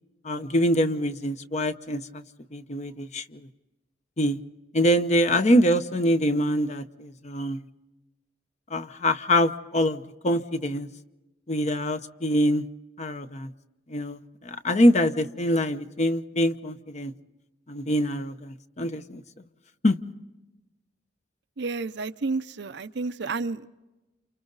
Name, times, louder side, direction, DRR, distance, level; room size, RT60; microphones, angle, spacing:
voice 1, 0.2-2.2 2.5-3.5 4.2-4.4 4.7-7.6 8.7-10.9 11.5-12.6 13.0-13.5 13.9-17.1 17.7-19.2 19.8-20.0, equal, 40° left, 9 dB, 0.9 m, -24 dB
voice 2, 21.6-23.7, right 3 dB, 65° right, 11 dB, 0.7 m, -31 dB
29.0 x 29.0 x 4.0 m, 1.1 s
head